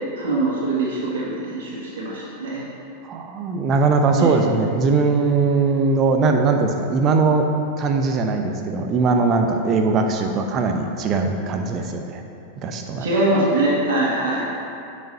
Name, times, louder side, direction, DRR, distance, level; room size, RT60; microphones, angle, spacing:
voice 1, 0.2-2.6 4.2-4.3 13.0-14.5, right 2 dB, 60° right, -5 dB, 2.2 m, -22 dB
voice 2, 3.0-7.5 7.8-12.2 12.6-13.1, right 4 dB, 30° right, 5 dB, 0.9 m, -20 dB
17.0 x 6.4 x 2.9 m, 2.6 s
figure-of-eight pair, 90°, 0 cm